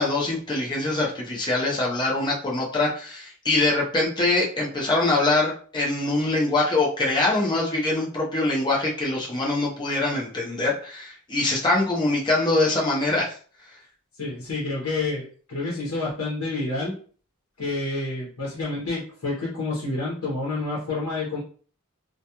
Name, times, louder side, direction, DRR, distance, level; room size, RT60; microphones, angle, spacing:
voice 1, 0.0-13.3, left 2 dB, 20° left, -3 dB, 0.6 m, -23 dB
voice 2, 14.2-16.9 17.6-21.4, left 2 dB, 75° left, -6 dB, 0.8 m, -29 dB
2.3 x 2.2 x 2.8 m, 0.42 s
head